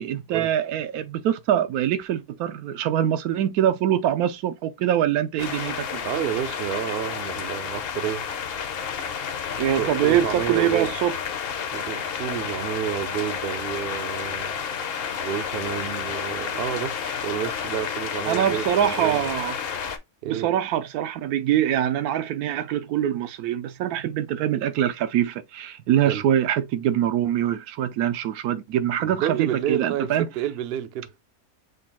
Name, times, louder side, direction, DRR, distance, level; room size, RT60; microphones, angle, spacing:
voice 1, 0.0-6.0 9.6-11.1 18.3-19.5 20.2-30.3, right 10 dB, 85° right, 1.1 m, -24 dB
sound 1, 5.4-20.0, left 7 dB, 55° left, 0.7 m, -31 dB
voice 2, 6.0-8.3 9.8-10.9 11.7-14.6 15.2-19.3 20.2-20.5 26.0-26.2 29.0-31.1, right 10 dB, 70° right, 0.5 m, -30 dB
5.2 x 2.3 x 4.1 m
omnidirectional pair, 1.5 m